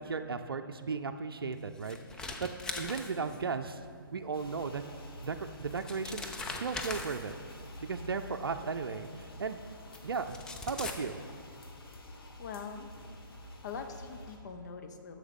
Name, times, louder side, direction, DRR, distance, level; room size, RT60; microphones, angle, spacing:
voice 1, 0.0-2.5 2.8-3.8 4.1-4.8 5.2-7.3 7.8-9.6 10.0-10.4 10.7-11.2, right 5 dB, 80° right, 7 dB, 0.5 m, -36 dB
sound 1, 1.5-3.6 5.0-5.1 5.6-7.6 8.8-8.9 9.9-10.0 10.2-10.9, left 3 dB, 5° left, 0.4 m, -40 dB
sound 2, 4.3-14.4, left 1 dB, 80° left, 1.4 m, -49 dB
voice 2, 12.4-12.9 13.6-15.2, left 6 dB, 50° left, 6 dB, 0.8 m, -42 dB
11.0 x 7.2 x 3.7 m, 2.2 s
figure-of-eight pair, 135°, 12 cm